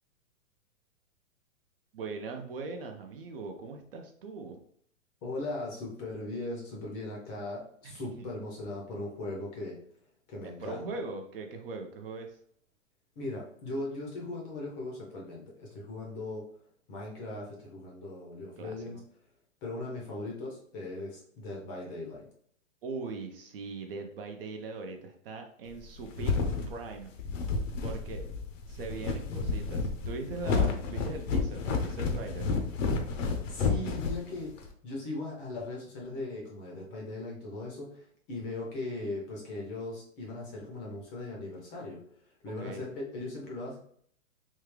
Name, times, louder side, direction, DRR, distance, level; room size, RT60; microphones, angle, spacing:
voice 1, 1.9-4.6 7.8-8.3 10.6-12.4 18.6-19.0 22.8-26.3 26.7-27.1 27.8-28.3 28.7-32.5 42.6-42.8, right 3 dB, 45° right, 4 dB, 0.5 m, -40 dB
voice 2, 5.2-9.8 10.3-10.9 13.2-16.5 16.9-19.0 19.6-22.2 33.5-34.5 34.8-43.8, left 2 dB, 20° left, -2 dB, 0.6 m, -39 dB
sound 1, 25.8-34.7, left 4 dB, 65° left, 0.7 m, -31 dB
3.5 x 2.3 x 3.1 m, 0.63 s
hypercardioid pair, 150°, 41 cm